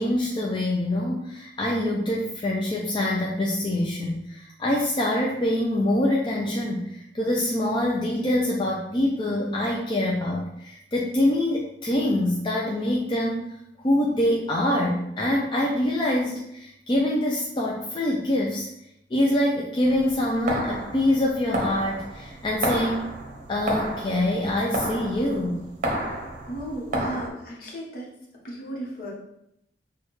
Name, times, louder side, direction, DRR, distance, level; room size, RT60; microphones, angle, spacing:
voice 1, 0.0-13.4 13.8-18.7 19.1-23.1 23.5-25.6, left 1 dB, 30° left, -2 dB, 0.4 m, -25 dB
sound 1, 19.8-27.3, right 1 dB, 45° right, 0.7 m, -31 dB
voice 2, 26.5-28.1 28.4-29.1, right 1 dB, 55° left, -3 dB, 1.1 m, -35 dB
6.2 x 2.3 x 3.1 m, 0.81 s
head